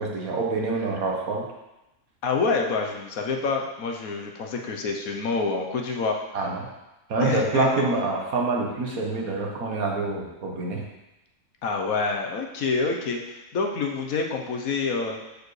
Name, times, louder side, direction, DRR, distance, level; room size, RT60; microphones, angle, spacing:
voice 1, 0.0-1.4 6.3-6.7 7.1-10.8, right 3 dB, 70° right, 0 dB, 1.6 m, -26 dB
voice 2, 2.2-6.2 7.2-7.9 11.6-15.2, left 4 dB, 70° left, 2 dB, 1.3 m, -27 dB
11.5 x 4.7 x 3.2 m, 0.97 s
omnidirectional pair, 1.6 m